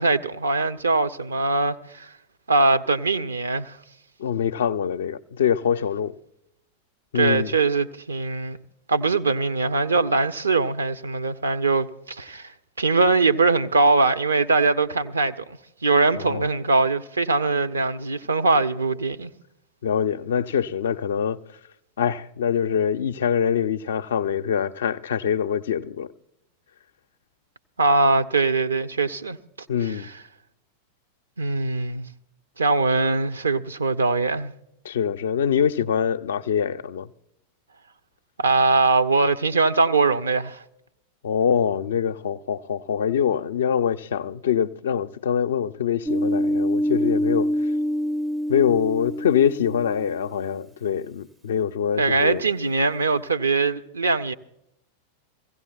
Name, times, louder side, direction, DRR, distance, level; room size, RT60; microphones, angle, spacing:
voice 1, 0.0-2.1 2.5-3.8 7.1-8.6 8.9-12.5 12.8-15.4 15.8-19.3 27.8-29.4 29.8-30.1 31.4-32.1 32.6-34.5 38.4-40.6 52.0-54.3, right 3 dB, 75° right, 0.6 m, -22 dB
voice 2, 4.2-6.1 7.1-7.5 16.1-16.5 19.8-21.4 22.0-26.1 29.7-30.1 34.8-37.1 41.2-47.5 48.5-52.4, left 8 dB, 65° left, 0.4 m, -24 dB
sound 1, 46.1-50.3, equal, 10° right, 0.4 m, -25 dB
24.0 x 16.0 x 2.3 m
figure-of-eight pair, 90°, 0 cm